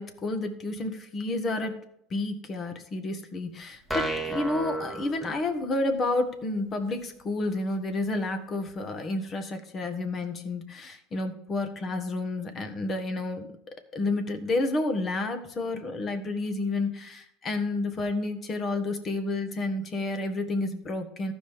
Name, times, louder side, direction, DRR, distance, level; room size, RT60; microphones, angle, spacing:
voice 1, 0.0-1.8 2.1-21.3, left 2 dB, 35° left, 7 dB, 1.6 m, -30 dB
sound 1, 3.9-5.8, right 1 dB, 5° left, 1.6 m, -33 dB
14.5 x 5.1 x 3.6 m, 0.71 s
hypercardioid pair, 80°, 0 cm